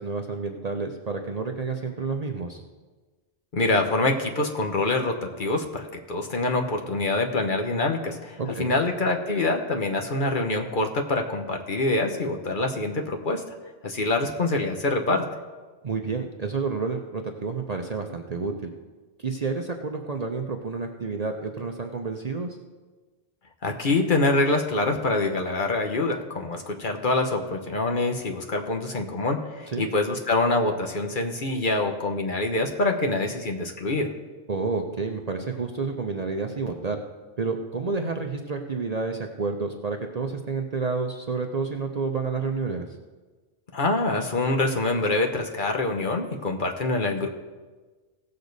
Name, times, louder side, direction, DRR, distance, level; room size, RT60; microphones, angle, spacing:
voice 1, 0.0-2.6 8.4-8.8 15.8-18.7 19.2-22.6 29.7-29.9 34.5-37.0 37.4-42.9, right 4 dB, 40° right, 3 dB, 0.7 m, -29 dB
voice 2, 3.5-13.4 13.8-15.3 23.6-34.1 43.7-47.3, left 2 dB, 45° left, 3 dB, 1.0 m, -25 dB
17.0 x 6.7 x 4.0 m, 1.3 s
omnidirectional pair, 1.2 m